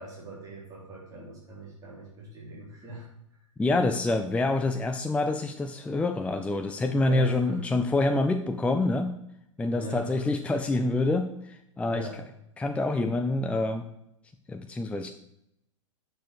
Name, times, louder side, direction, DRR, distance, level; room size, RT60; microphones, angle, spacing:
voice 1, 0.0-3.1 7.1-7.6 9.7-10.2 11.9-12.2, right 1 dB, 20° right, -5 dB, 4.0 m, -40 dB
voice 2, 3.6-9.1 9.6-12.1 12.6-13.9 14.5-15.1, left 2 dB, 5° left, 6 dB, 0.6 m, -26 dB
10.0 x 6.3 x 6.8 m, 0.78 s
figure-of-eight pair, 95°, 17 cm